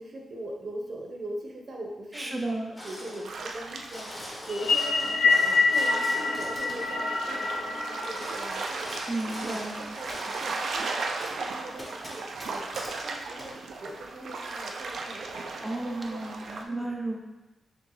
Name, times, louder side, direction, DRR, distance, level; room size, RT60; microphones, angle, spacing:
voice 1, 0.0-2.6 2.8-4.1 4.5-9.0 9.3-10.8 11.1-13.5 13.8-16.2 16.7-16.9, right 1 dB, 55° right, 0 dB, 0.8 m, -41 dB
voice 2, 2.1-2.7 9.1-9.8 15.2-15.3 15.6-17.2, right 2 dB, 5° right, -1 dB, 0.5 m, -33 dB
sound 1, 2.7-3.3 3.7-6.9 7.8-10.6 11.2-11.3 11.8-13.0 13.4-13.5, equal, 20° left, 1.2 m, -42 dB
sound 2, 3.2-16.6, right 3 dB, 80° right, 0.4 m, -37 dB
sound 3, 4.5-9.0, left 4 dB, 80° left, 0.5 m, -26 dB
6.1 x 2.3 x 3.1 m, 1.1 s
cardioid pair, 85°, 0 cm